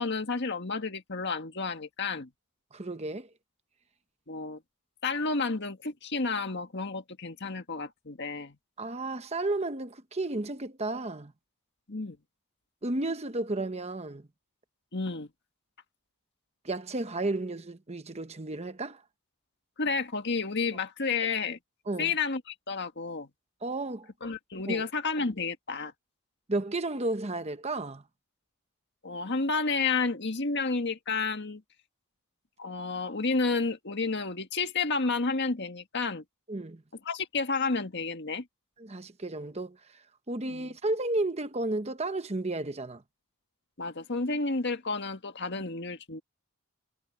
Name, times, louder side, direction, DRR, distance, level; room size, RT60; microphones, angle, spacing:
voice 1, 0.0-2.3 4.3-4.6 5.0-8.6 11.9-12.2 14.9-15.3 19.8-21.6 22.0-23.3 24.2-25.9 29.0-31.6 32.6-36.2 37.1-38.5 40.5-40.7 43.8-46.2, left 4 dB, 50° left, 1.8 m, -31 dB
voice 2, 2.7-3.3 8.8-11.3 12.8-14.2 16.6-19.0 21.9-22.1 23.6-24.1 24.7-24.8 26.5-28.0 36.5-36.8 38.8-39.8 40.3-43.0, right 2 dB, 30° right, 1.0 m, -32 dB
head